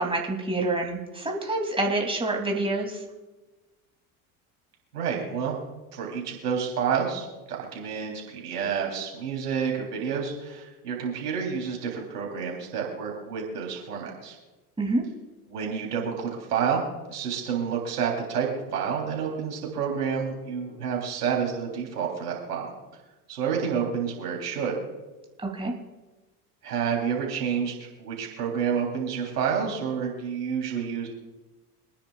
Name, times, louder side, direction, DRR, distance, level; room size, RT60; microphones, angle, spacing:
voice 1, 0.0-3.0 14.8-15.0 25.4-25.7, right 2 dB, 10° right, 1 dB, 2.9 m, -27 dB
voice 2, 4.9-5.6 5.9-14.4 15.5-16.8 17.1-22.7 23.3-24.8 26.6-31.1, right 7 dB, 90° right, 0 dB, 3.6 m, -29 dB
27.0 x 10.0 x 2.4 m, 1.2 s
hypercardioid pair, 70°, 46 cm